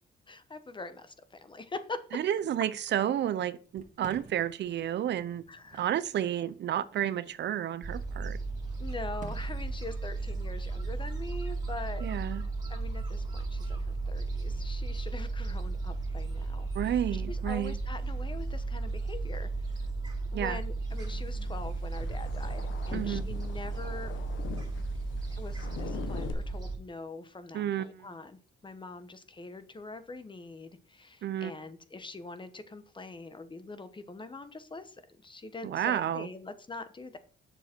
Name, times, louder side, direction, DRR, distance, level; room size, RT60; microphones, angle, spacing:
voice 1, 0.3-2.0 5.5-5.9 8.8-12.1 12.7-17.0 17.3-19.9 20.3-24.1 25.3-37.2, left 3 dB, 25° left, 1.1 m, -43 dB
voice 2, 2.1-5.4 5.7-8.4 12.0-12.4 16.7-17.7 20.3-20.6 22.9-23.2 27.5-28.1 31.2-31.5 35.6-36.3, right 10 dB, 65° right, 0.6 m, -31 dB
Fireworks, 3.6-13.5, right 5 dB, 40° right, 1.6 m, -54 dB
Gull seagull, 7.8-26.8, right 3 dB, 20° right, 2.5 m, -34 dB
sound 1, 20.9-26.3, left 8 dB, 75° left, 1.3 m, -43 dB
7.6 x 6.7 x 4.5 m
cardioid pair, 90°, 20 cm